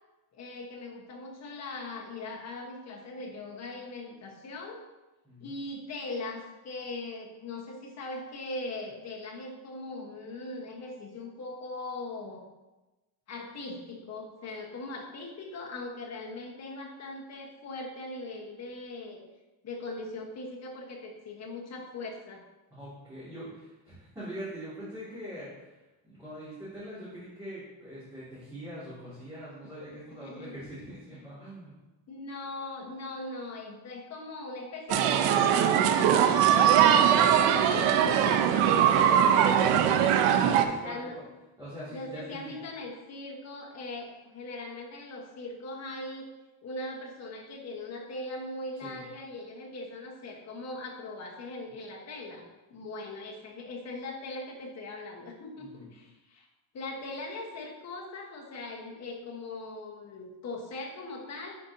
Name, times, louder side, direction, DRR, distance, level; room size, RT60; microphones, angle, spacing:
voice 1, 0.3-4.8 5.4-12.4 13.3-19.2 19.6-22.4 30.2-30.6 32.1-38.8 40.8-41.2 41.9-46.3 46.6-52.4 52.7-56.5 56.7-61.6, left 2 dB, 35° left, -1 dB, 1.3 m, -40 dB
voice 2, 22.7-25.7 26.0-31.7 39.6-41.2 41.6-42.5 48.8-49.0 55.6-55.9, equal, 10° right, -13 dB, 2.2 m, -42 dB
sound 1, 34.9-40.6, right 9 dB, 85° right, 0.7 m, -21 dB
10.5 x 4.4 x 2.8 m, 1.1 s
cardioid pair, 165°, 48 cm